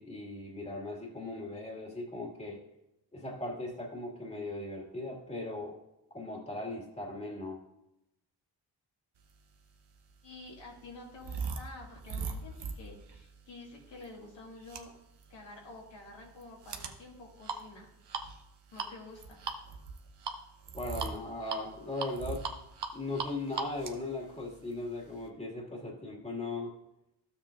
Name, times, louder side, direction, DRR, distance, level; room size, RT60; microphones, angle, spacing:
voice 1, 0.0-2.6 3.1-5.8 6.1-7.6 20.7-22.5 22.9-26.7, left 2 dB, 15° left, -2 dB, 2.2 m, -38 dB
sound 1, 9.6-25.3, right 5 dB, 65° right, 1.1 m, -41 dB
voice 2, 10.2-14.9 15.3-17.9 18.7-19.4, left 2 dB, 70° left, -2 dB, 2.4 m, -49 dB
12.5 x 7.3 x 2.6 m, 0.86 s
cardioid pair, 55°, 45 cm